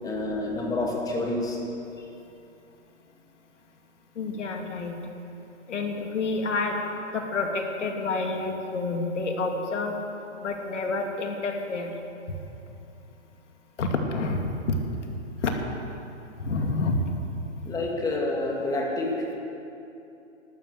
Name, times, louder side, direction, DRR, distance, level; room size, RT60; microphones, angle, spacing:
voice 1, 0.0-1.6 2.0-2.1 17.7-19.4, left 2 dB, 10° left, -1 dB, 2.2 m, -28 dB
voice 2, 4.2-5.0 5.7-6.8 7.1-9.9 10.4-11.9 13.8-14.4 15.4-15.5 16.4-17.0, left 3 dB, 70° left, 3 dB, 2.5 m, -28 dB
12.5 x 12.5 x 8.0 m, 2.8 s
hypercardioid pair, 140°, 37 cm